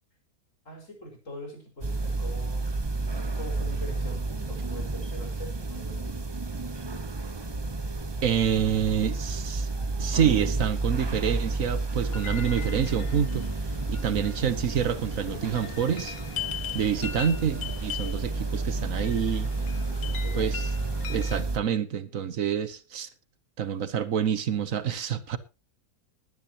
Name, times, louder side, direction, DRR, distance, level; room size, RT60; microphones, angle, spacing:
voice 1, 0.7-2.7 3.3-6.2 19.9-20.7, left 1 dB, 60° left, 5.6 m, -42 dB
sound 1, 1.8-21.6, right 3 dB, 20° right, 0.8 m, -31 dB
voice 2, 8.2-9.7 10.0-13.5 13.9-16.2 16.7-19.5 20.3-20.6 21.1-23.1 23.6-25.4, right 8 dB, 65° right, 1.3 m, -27 dB
sound 2, 12.1-21.4, left 9 dB, 80° left, 1.6 m, -40 dB
20.5 x 10.0 x 2.9 m
omnidirectional pair, 1.5 m